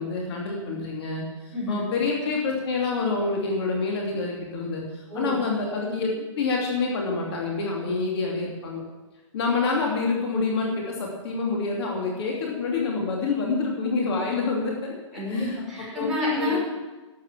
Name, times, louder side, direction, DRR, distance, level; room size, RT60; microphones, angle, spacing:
voice 1, 0.0-6.1 6.4-8.8 9.3-15.6 16.0-16.1 16.4-16.5, left 4 dB, 55° left, -1 dB, 2.9 m, -27 dB
voice 2, 15.1-16.6, left 2 dB, ahead, -9 dB, 5.8 m, -28 dB
12.0 x 8.7 x 7.6 m, 1.2 s
hypercardioid pair, 150°, 16 cm